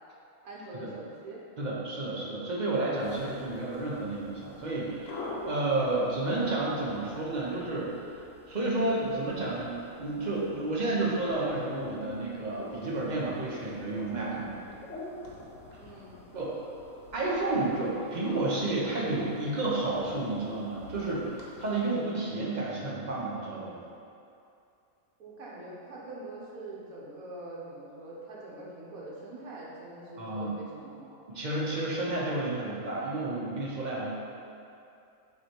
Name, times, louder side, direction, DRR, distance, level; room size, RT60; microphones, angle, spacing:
voice 1, 0.4-1.4 6.5-7.9 15.8-16.1 25.2-31.2, right 2 dB, 75° right, -6 dB, 1.7 m, -44 dB
voice 2, 1.6-7.9 8.5-9.7 10.0-14.6 16.3-16.6 17.1-23.8 30.2-30.5 31.3-34.1, right 2 dB, 35° right, -5 dB, 1.0 m, -31 dB
sound 1, 2.9-22.2, left 2 dB, 65° left, 1.4 m, -47 dB
7.2 x 3.3 x 4.6 m, 2.6 s
omnidirectional pair, 1.5 m